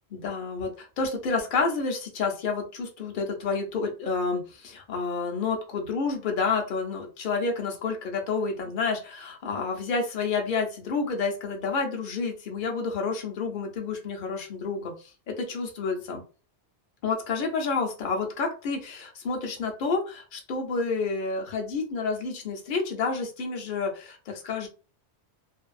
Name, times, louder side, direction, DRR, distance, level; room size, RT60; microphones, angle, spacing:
voice 1, 0.1-16.2 17.0-24.7, left 4 dB, 55° left, 2 dB, 0.8 m, -29 dB
2.6 x 2.3 x 2.4 m, 0.34 s
omnidirectional pair, 1.1 m